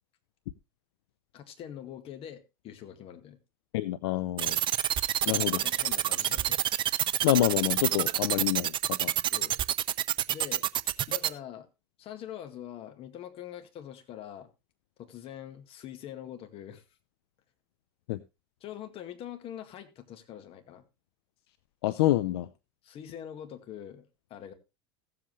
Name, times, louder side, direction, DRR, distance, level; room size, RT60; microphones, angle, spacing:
voice 1, 1.3-3.4 5.2-6.6 9.3-9.6 10.3-10.7 11.1-11.7 12.0-14.5 15.0-16.8 18.6-20.8 22.8-24.5, left 10 dB, 45° left, 2.0 m, -44 dB
voice 2, 3.7-4.6 5.3-5.6 7.2-9.1 18.1-18.2 21.8-22.5, left 15 dB, 75° left, 0.6 m, -27 dB
sound 1, 4.4-11.3, right 12 dB, 40° right, 0.7 m, -27 dB
16.5 x 7.8 x 3.1 m
hypercardioid pair, 100°, 13 cm